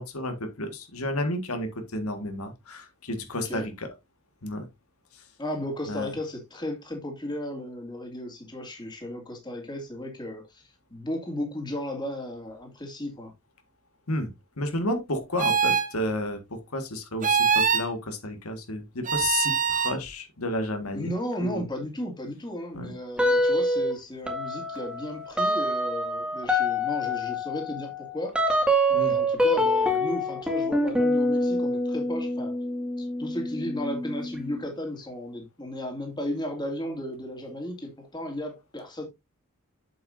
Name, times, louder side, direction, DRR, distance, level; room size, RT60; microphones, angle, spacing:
voice 1, 0.0-3.9 4.4-4.7 5.9-6.1 14.1-21.1 21.4-21.6 22.7-22.9 28.9-29.2, left 1 dB, 85° left, 1.8 m, -31 dB
voice 2, 3.3-3.7 5.4-10.6 10.9-13.3 20.9-28.4 28.9-32.6 33.0-39.1, left 1 dB, 20° left, 2.4 m, -35 dB
sound 1, 15.4-15.9 17.2-17.9 19.0-20.0, right 6 dB, 35° right, 1.0 m, -23 dB
sound 2, 23.2-23.9 24.3-34.6, equal, 5° right, 2.0 m, -26 dB
8.0 x 7.7 x 2.6 m
head